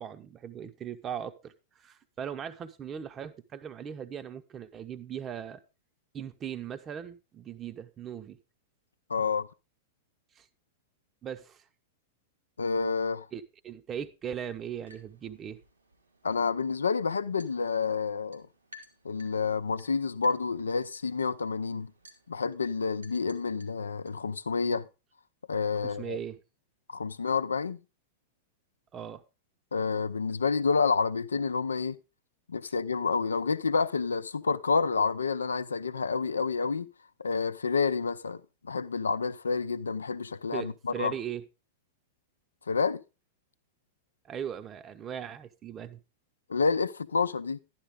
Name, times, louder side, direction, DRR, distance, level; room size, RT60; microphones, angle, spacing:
voice 1, 0.0-5.6 6.1-8.4 10.3-10.5 11.2-11.6 13.3-15.6 25.8-26.4 28.9-29.2 40.5-41.4 44.2-46.0, right 8 dB, 25° right, 0.9 m, -39 dB
voice 2, 9.1-9.5 12.6-13.3 16.2-18.5 19.0-21.9 22.3-24.9 25.5-26.2 26.9-27.8 29.7-32.0 32.5-36.9 37.2-41.1 42.7-43.0 46.5-47.6, left 5 dB, 75° left, 0.6 m, -29 dB
sound 1, 14.5-24.2, left 1 dB, 85° right, 2.3 m, -59 dB
12.0 x 10.5 x 3.6 m
figure-of-eight pair, 95°, 0 cm